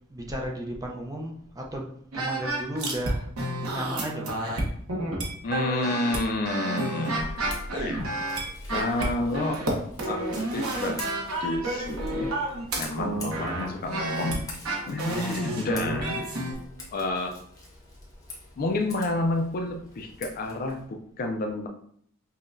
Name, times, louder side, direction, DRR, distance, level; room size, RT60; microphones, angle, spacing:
voice 1, 0.1-4.4 14.9-15.8, right 1 dB, 15° right, 0 dB, 0.5 m, -35 dB
sound 1, 2.1-3.1 3.4-16.5, right 1 dB, 75° right, 0.9 m, -30 dB
voice 2, 5.4-7.4 7.7-8.0 8.7-9.6 10.0-11.1 11.4-12.3 12.8-14.5 14.9-16.2 16.9-17.4 18.6-21.7, left 2 dB, 40° left, 5 dB, 0.4 m, -29 dB
Scissors, 7.1-20.8, left 1 dB, 15° left, 0.9 m, -44 dB
5.6 x 2.2 x 2.5 m, 0.64 s
head